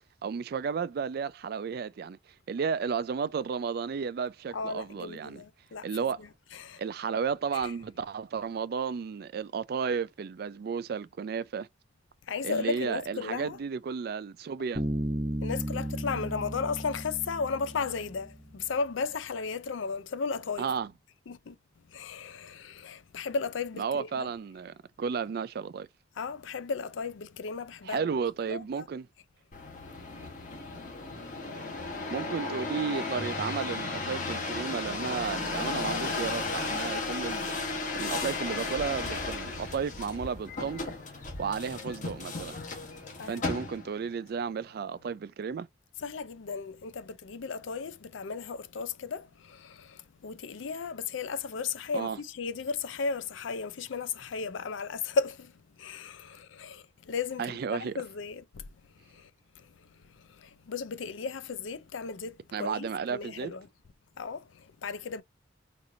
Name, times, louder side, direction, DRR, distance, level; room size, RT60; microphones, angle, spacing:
voice 1, 0.2-2.2 2.5-5.4 5.8-6.2 6.8-11.7 12.4-14.8 20.6-20.9 23.8-25.9 27.8-29.0 32.1-40.9 41.4-42.6 43.3-45.7 51.9-52.2 57.4-57.9 62.5-63.5, right 6 dB, 50° right, 0.3 m, -33 dB
voice 2, 4.5-5.9 6.2-6.8 7.5-7.7 12.3-13.6 15.4-20.7 21.3-21.6 21.9-24.3 26.2-28.1 28.5-28.9 29.8-30.5 30.8-31.4 43.2-43.6 46.0-57.5 57.7-59.3 59.6-63.7 64.2-65.2, left 5 dB, 75° left, 0.5 m, -35 dB
Bass guitar, 14.7-18.4, right 1 dB, 20° right, 0.7 m, -34 dB
sound 1, 29.5-44.1 44.7-45.2, left 3 dB, 40° left, 1.2 m, -35 dB
4.2 x 2.6 x 2.6 m
head